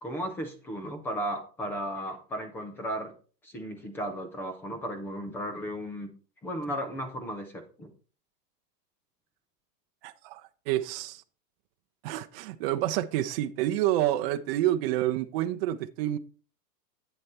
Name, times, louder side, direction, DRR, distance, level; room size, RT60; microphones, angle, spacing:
voice 1, 0.0-3.1 3.4-6.1 6.4-7.9, equal, 5° left, 0.4 m, -35 dB
voice 2, 10.0-11.2 12.0-16.2, right 13 dB, 40° right, 0.7 m, -28 dB
9.2 x 7.5 x 4.2 m
supercardioid pair, 150°, 47 cm